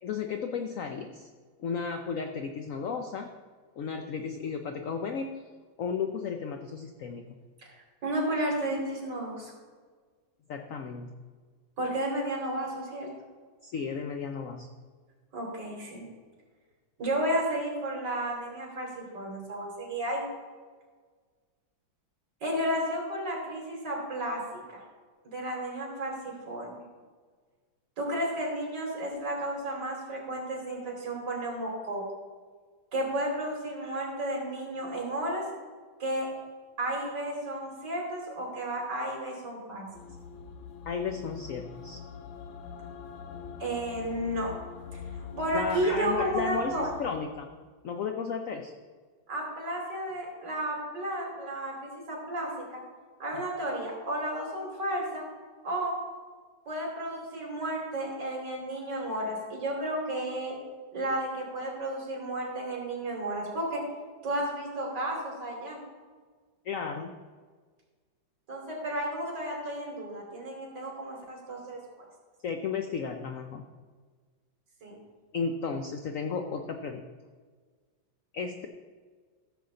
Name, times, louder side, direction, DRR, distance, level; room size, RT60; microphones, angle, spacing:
voice 1, 0.0-1.3 1.6-3.3 3.8-5.4 5.8-7.4 10.5-11.2 13.6-14.7 40.9-42.0 45.5-47.6 47.8-48.7 53.3-53.4 66.6-67.1 72.4-73.6 75.3-77.0 78.3-78.7, left 6 dB, 70° left, 5 dB, 0.7 m, -34 dB
voice 2, 8.0-9.5 11.8-13.1 15.3-16.1 17.0-20.3 22.4-24.4 24.7-24.8 25.2-26.8 28.0-32.0 32.9-35.4 36.0-36.3 36.8-39.9 43.6-44.5 44.9-46.9 49.3-52.8 53.2-55.2 55.6-56.0 56.7-60.6 60.9-63.8 64.2-65.8 68.5-72.1 74.8-75.0, right 1 dB, 60° right, -1 dB, 3.4 m, -32 dB
sound 1, 39.9-47.2, left 6 dB, 90° left, 1.5 m, -43 dB
14.5 x 7.0 x 3.8 m, 1.5 s
omnidirectional pair, 2.1 m